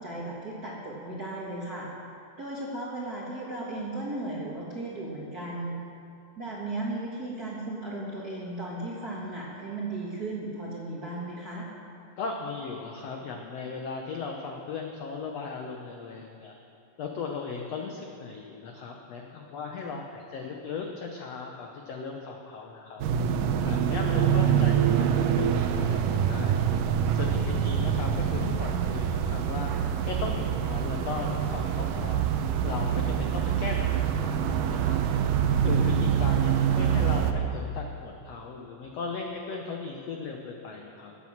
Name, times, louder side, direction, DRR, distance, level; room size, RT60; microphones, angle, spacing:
voice 1, 0.0-1.9 2.4-5.8 6.4-11.7 19.8-19.9 35.8-36.0, right 2 dB, 40° right, -5 dB, 1.3 m, -36 dB
voice 2, 12.2-16.5 17.0-23.0 23.6-26.6 27.1-29.7 30.0-32.2 32.6-35.0 35.6-41.1, left 4 dB, 75° left, 2 dB, 1.5 m, -37 dB
sound 1, 23.0-37.3, right 8 dB, 75° right, 2.1 m, -25 dB
15.0 x 9.0 x 7.3 m, 2.6 s
omnidirectional pair, 4.1 m